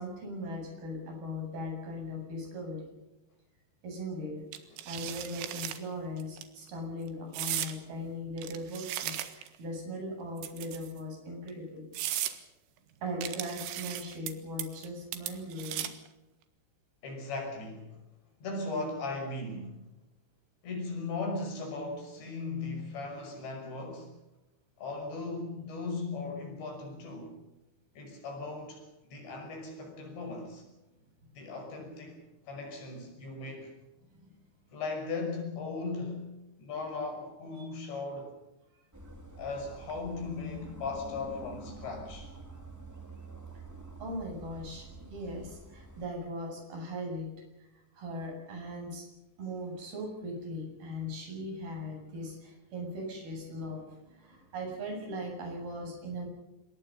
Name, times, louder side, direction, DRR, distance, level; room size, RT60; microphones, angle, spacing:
voice 1, 0.0-2.8 3.8-4.4 4.9-11.9 13.0-15.9 34.2-34.3 37.6-37.7 44.0-47.3 47.9-49.1 49.4-56.3, equal, 50° right, 2 dB, 9.3 m, -39 dB
sound 1, 4.5-5.8 6.2-6.4 7.3-7.8 8.4-9.6 10.4-11.0 11.5-11.6 11.9-12.4 13.2-14.3 14.6-14.9 15.1-16.1, right 12 dB, 85° right, 4.2 m, -36 dB
voice 2, 17.0-18.0 18.4-19.8 20.6-24.1 24.8-27.3 28.0-30.6 31.4-32.2 32.5-33.7 34.7-36.3 36.6-38.3 39.4-42.3, left 3 dB, 65° left, 4 dB, 8.1 m, -37 dB
sound 2, 38.9-46.1, right 3 dB, 5° right, 2.0 m, -47 dB
27.0 x 22.0 x 5.5 m, 0.98 s
omnidirectional pair, 5.5 m